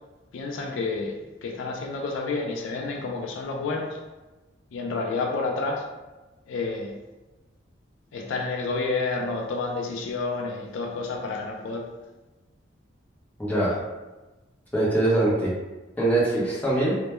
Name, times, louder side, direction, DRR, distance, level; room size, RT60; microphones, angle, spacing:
voice 1, 0.3-4.0 4.7-5.9 6.5-7.0 8.1-11.9, left 3 dB, 75° left, 1 dB, 0.3 m, -30 dB
voice 2, 13.4-13.8 14.7-15.5 16.0-17.0, right 2 dB, 10° left, -7 dB, 0.6 m, -22 dB
2.1 x 2.1 x 2.9 m, 1.1 s
head